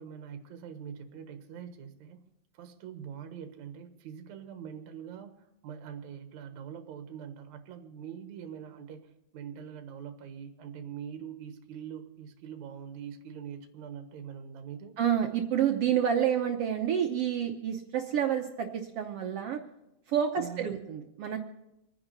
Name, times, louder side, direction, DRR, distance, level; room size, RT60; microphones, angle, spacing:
voice 1, 0.0-2.2 2.5-15.0 20.4-20.7, right 8 dB, 60° right, 6 dB, 2.4 m, -43 dB
voice 2, 15.0-19.6 20.1-21.4, right 9 dB, 80° right, 4 dB, 1.3 m, -29 dB
26.0 x 9.7 x 4.2 m, 0.90 s
omnidirectional pair, 3.9 m